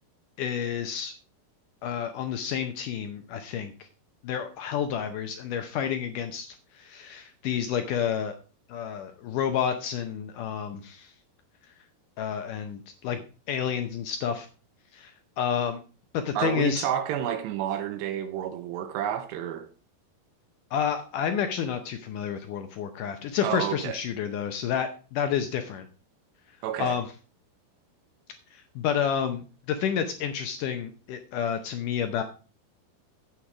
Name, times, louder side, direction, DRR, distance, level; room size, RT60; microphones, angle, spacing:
voice 1, 0.4-1.1 1.8-3.7 4.2-8.4 8.7-11.1 12.2-13.2 13.5-14.5 14.9-15.8 16.1-16.9 20.7-25.9 26.8-27.1 28.5-32.2, left 8 dB, 80° left, 1.9 m, -30 dB
voice 2, 16.4-19.7 23.4-24.0 26.6-27.0, right 10 dB, 85° right, 2.9 m, -30 dB
9.1 x 8.2 x 4.8 m
omnidirectional pair, 4.7 m